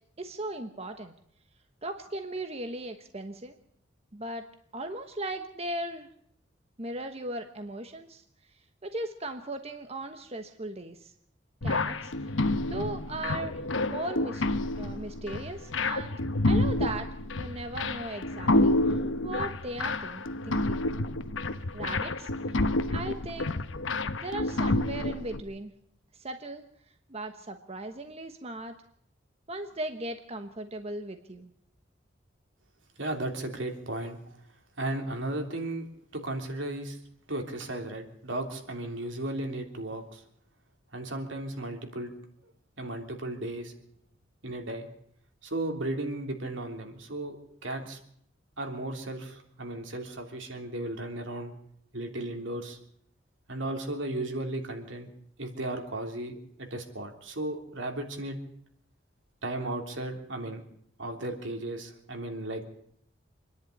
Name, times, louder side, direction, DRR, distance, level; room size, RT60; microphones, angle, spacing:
voice 1, 0.2-1.1 1.8-3.5 4.1-4.4 4.7-6.1 6.8-8.2 8.8-11.1 11.6-12.3 12.6-13.6 13.9-14.4 14.8-16.2 16.5-17.1 17.3-20.9 21.7-23.6 24.2-25.7 26.1-26.6 27.1-28.7 29.5-31.5, right 2 dB, 35° right, 7 dB, 1.2 m, -38 dB
sound 1, 11.6-25.4, left 2 dB, 85° left, 1.0 m, -29 dB
voice 2, 33.0-34.2 34.8-35.8 36.1-37.0 37.3-40.2 40.9-42.1 42.8-43.7 44.4-44.9 45.4-48.0 48.6-51.5 51.9-52.8 53.5-55.1 55.4-58.4 59.4-60.6 61.0-62.6, right 1 dB, 75° right, 3 dB, 3.3 m, -35 dB
26.0 x 10.5 x 9.7 m, 0.68 s
head